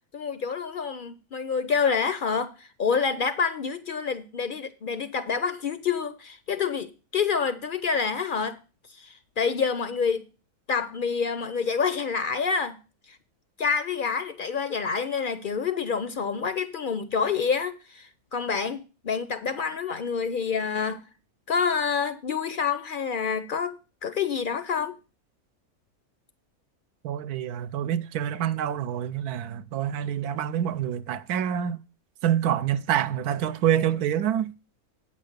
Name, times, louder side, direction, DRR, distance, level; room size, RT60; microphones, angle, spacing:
voice 1, 0.1-8.6 8.9-10.2 10.7-12.8 13.1-13.2 13.6-21.1 21.5-25.0, left 6 dB, 60° left, 0.5 m, -27 dB
voice 2, 27.0-31.8 32.2-34.5, right 10 dB, 80° right, 1.2 m, -26 dB
8.6 x 5.9 x 6.5 m
omnidirectional pair, 1.6 m